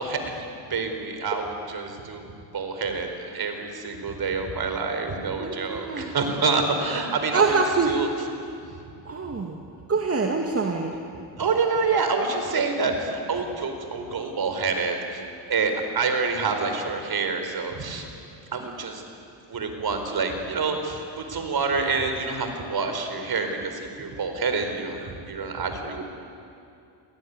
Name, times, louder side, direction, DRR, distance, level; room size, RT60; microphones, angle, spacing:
voice 1, 0.0-2.3 2.5-7.5 7.8-8.1 11.4-15.2 15.5-18.1 18.5-19.0 19.5-26.0, right 4 dB, 45° right, 6 dB, 4.7 m, -27 dB
voice 2, 5.4-6.1 7.3-7.9 9.1-9.6 9.9-10.9, right 4 dB, 30° right, 2 dB, 2.4 m, -24 dB
27.0 x 18.0 x 9.7 m, 2.5 s
supercardioid pair, 65°, 50 cm